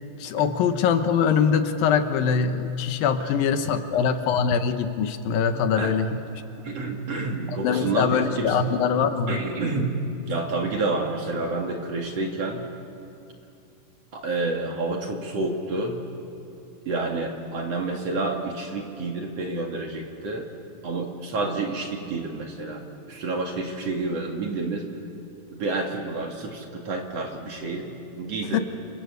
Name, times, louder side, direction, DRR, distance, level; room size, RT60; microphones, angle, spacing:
voice 1, 0.2-6.1 7.6-9.4 28.5-28.6, left 6 dB, 85° left, 8 dB, 2.9 m, -23 dB
voice 2, 3.6-4.0 5.8-5.9 6.6-8.7 9.3-10.0 10.3-12.6 14.1-16.0 16.9-20.4 20.8-22.8 23.1-24.8 25.5-27.9 28.2-28.6, right 3 dB, 50° right, 2 dB, 2.9 m, -29 dB
28.0 x 25.5 x 8.1 m, 2.6 s
omnidirectional pair, 4.1 m